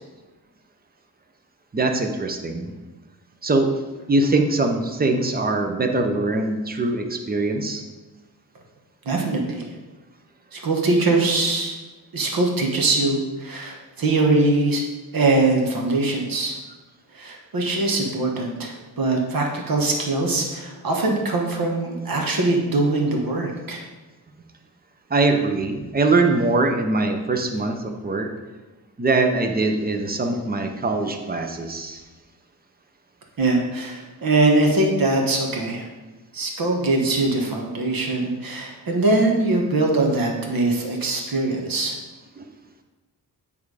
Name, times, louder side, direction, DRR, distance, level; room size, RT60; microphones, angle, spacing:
voice 1, 1.7-2.7 3.4-3.7 4.1-7.8 25.1-28.3 29.0-32.0 42.4-42.5, right 2 dB, 25° right, 5 dB, 0.7 m, -22 dB
voice 2, 9.0-9.6 10.5-11.8 12.1-14.8 15.1-16.6 17.1-23.8 33.4-35.8 36.3-42.0, right 2 dB, 60° right, 0 dB, 1.4 m, -22 dB
8.8 x 3.6 x 4.8 m, 1.2 s
wide cardioid pair, 135°, 39 cm